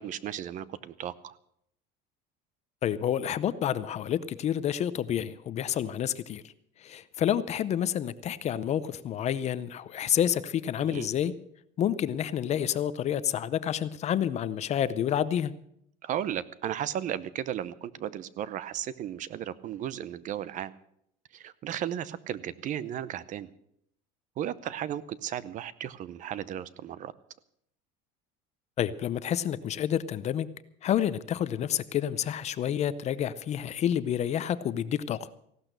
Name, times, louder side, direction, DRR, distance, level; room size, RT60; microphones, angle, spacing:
voice 1, 0.0-1.3 10.8-11.1 16.0-20.7 21.3-23.5 24.4-27.1, right 10 dB, 40° right, 18 dB, 0.7 m, -35 dB
voice 2, 2.8-6.4 6.8-11.3 11.8-15.5 28.8-30.5 30.8-35.3, left 10 dB, 35° left, 15 dB, 0.7 m, -29 dB
16.0 x 12.0 x 6.7 m, 0.73 s
cardioid pair, 150°, 20 cm